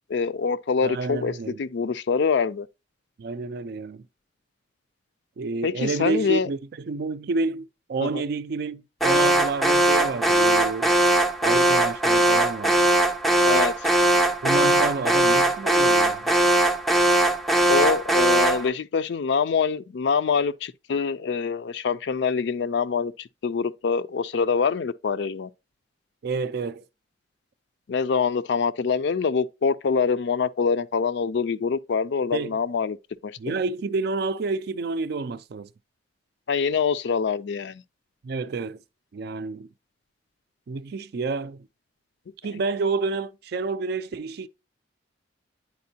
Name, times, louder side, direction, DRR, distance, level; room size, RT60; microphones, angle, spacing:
voice 1, 0.1-1.3 1.6-2.7 5.6-6.5 8.0-8.1 13.4-13.7 17.7-25.5 27.9-33.0 33.2-33.5 36.5-37.8, left 5 dB, 65° left, 0.4 m, -25 dB
voice 2, 0.8-1.6 3.2-4.1 5.4-11.0 11.4-12.9 14.4-16.3 26.2-26.8 32.3-32.6 33.4-35.7 38.2-38.8 39.1-39.7 40.7-41.7 42.4-44.5, right 4 dB, 60° right, 0.4 m, -29 dB
Alarm, 9.0-18.7, right 1 dB, ahead, 0.4 m, -20 dB
9.4 x 4.4 x 2.7 m
head